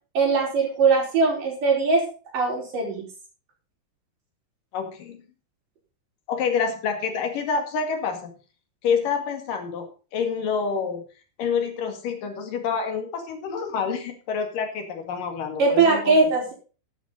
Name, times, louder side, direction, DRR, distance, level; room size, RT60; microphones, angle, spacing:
voice 1, 0.1-2.0 2.3-3.0 15.6-16.5, right 4 dB, 85° right, -1 dB, 6.5 m, -20 dB
voice 2, 4.7-5.2 6.3-8.3 8.8-9.9 10.1-11.0 11.4-16.3, left 6 dB, 85° left, 5 dB, 3.9 m, -27 dB
13.0 x 10.5 x 4.1 m, 0.35 s
omnidirectional pair, 3.7 m